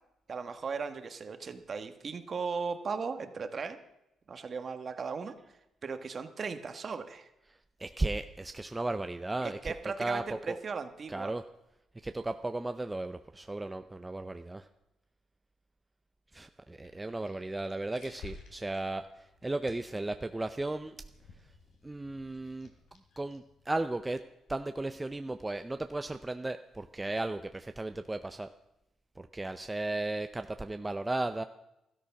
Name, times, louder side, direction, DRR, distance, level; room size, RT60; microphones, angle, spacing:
voice 1, 0.3-3.8 4.3-5.3 5.8-7.3 9.4-11.3, right 5 dB, 45° right, 9 dB, 1.4 m, -37 dB
voice 2, 7.8-9.7 10.0-10.6 11.1-11.4 12.0-14.7 16.3-21.0 21.8-22.7 23.2-24.2 24.5-28.5 29.2-31.4, right 2 dB, 15° right, 8 dB, 0.6 m, -35 dB
sound 1, 16.7-24.0, left 4 dB, 75° left, 3.1 m, -55 dB
13.5 x 12.5 x 5.9 m, 0.89 s
cardioid pair, 90°, 0 cm